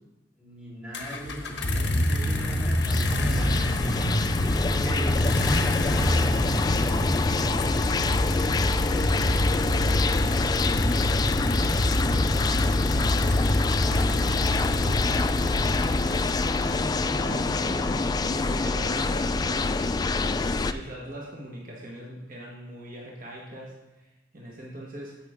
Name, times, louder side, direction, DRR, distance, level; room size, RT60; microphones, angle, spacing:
voice 1, 0.4-4.1 4.7-8.5, equal, 5° right, -9 dB, 3.7 m, -41 dB
sound 1, 0.9-16.9, left 1 dB, 65° left, 1.1 m, -26 dB
sound 2, 1.6-20.7, left 3 dB, 20° left, 0.3 m, -27 dB
voice 2, 16.6-19.9 20.1-25.2, right 1 dB, 50° right, -3 dB, 1.5 m, -41 dB
14.0 x 5.9 x 3.6 m, 1.0 s
head